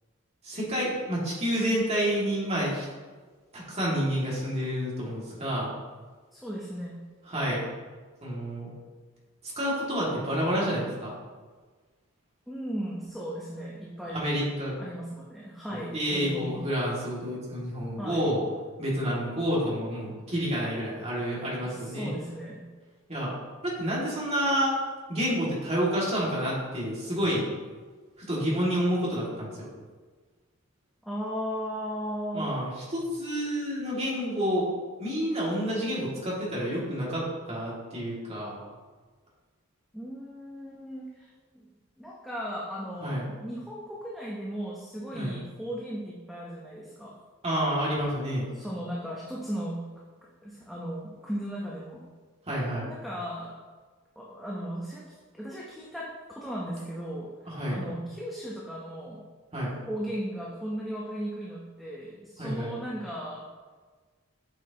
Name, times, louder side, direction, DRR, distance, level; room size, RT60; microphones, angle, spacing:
voice 1, 0.4-2.9 3.5-5.7 7.3-7.6 8.2-8.7 9.6-11.1 14.1-14.8 15.7-18.4 18.8-22.1 23.1-23.3 23.6-24.8 25.1-27.5 28.2-29.7 32.3-34.7 35.0-38.6 43.0-43.3 45.1-45.4 47.4-48.5 52.5-52.9 57.4-57.8 59.5-59.8 62.4-62.8, equal, 30° right, -6 dB, 2.1 m, -29 dB
voice 2, 6.3-7.0 12.5-14.4 14.8-16.6 18.0-18.3 21.6-22.7 31.0-32.5 39.9-41.3 41.5-41.7 42.0-47.1 48.5-49.8 50.2-52.1 52.8-53.6 54.2-57.3 57.7-59.2 59.9-63.4, equal, ahead, -6 dB, 0.8 m, -36 dB
8.3 x 6.4 x 2.9 m, 1.4 s
head